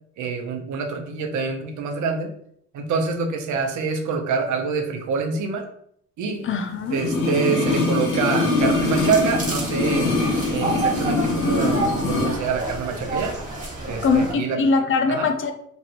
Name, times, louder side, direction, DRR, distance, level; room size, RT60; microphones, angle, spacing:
voice 1, 0.2-2.3 2.7-5.7 6.2-6.5 6.9-10.1 10.5-13.4 13.9-14.6 15.1-15.3, right 5 dB, 75° right, 4 dB, 0.7 m, -26 dB
voice 2, 6.4-7.0 14.0-15.5, left 4 dB, 45° left, 6 dB, 0.5 m, -21 dB
sound 1, 6.9-12.4 12.6-12.7, left 2 dB, 90° left, 0.9 m, -23 dB
sound 2, 8.6-14.3, right 2 dB, 25° right, 1.3 m, -30 dB
3.2 x 2.4 x 2.9 m, 0.67 s
cardioid pair, 90°, 30 cm